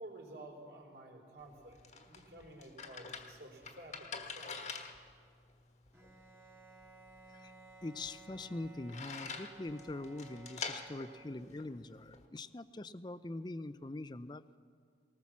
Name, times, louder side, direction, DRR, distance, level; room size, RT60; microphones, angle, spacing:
voice 1, 0.0-4.6, right 1 dB, 70° right, 1 dB, 4.0 m, -52 dB
sound 1, 1.4-12.3, left 5 dB, 40° left, 1.4 m, -47 dB
Bowed string instrument, 5.9-11.7, right 2 dB, 15° right, 1.6 m, -58 dB
voice 2, 7.8-14.4, left 2 dB, 25° left, 14 dB, 0.5 m, -43 dB
19.5 x 19.0 x 7.3 m, 2.1 s
head